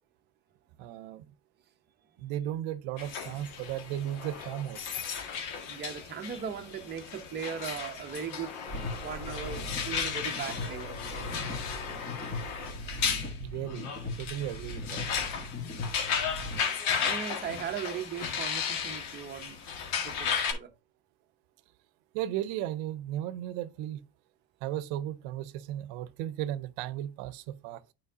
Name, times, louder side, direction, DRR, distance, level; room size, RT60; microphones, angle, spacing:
voice 1, 0.8-1.2 2.2-5.0 13.4-13.9 14.2-15.1 22.1-24.1 24.6-27.8, right 12 dB, 85° right, 0.7 m, -35 dB
sound 1, 3.0-20.5, left 6 dB, 85° left, 1.7 m, -35 dB
voice 2, 5.6-8.6 9.0-11.0 17.0-19.6 20.0-20.7, right 8 dB, 25° right, 0.7 m, -38 dB
sound 2, 8.7-16.6, left 1 dB, 25° left, 1.3 m, -39 dB
9.8 x 4.5 x 2.7 m
cardioid pair, 150°, 44 cm